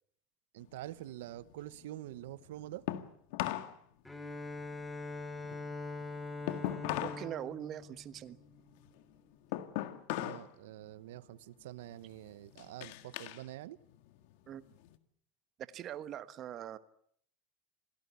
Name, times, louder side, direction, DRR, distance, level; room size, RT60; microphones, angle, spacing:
voice 1, 0.5-2.8 10.2-13.8, right 14 dB, 85° right, 1.0 m, -46 dB
sound 1, 0.6-3.8 4.1-7.3 7.6-10.5 10.9-11.3 11.8-13.4 13.8-15.0, left 14 dB, 70° left, 1.9 m, -40 dB
Bowed string instrument, 4.0-8.8, left 3 dB, 5° left, 3.3 m, -43 dB
voice 2, 7.0-8.4 14.5-14.6 15.6-16.8, right 11 dB, 40° right, 1.2 m, -42 dB
27.5 x 17.5 x 8.3 m
supercardioid pair, 130°, 0 cm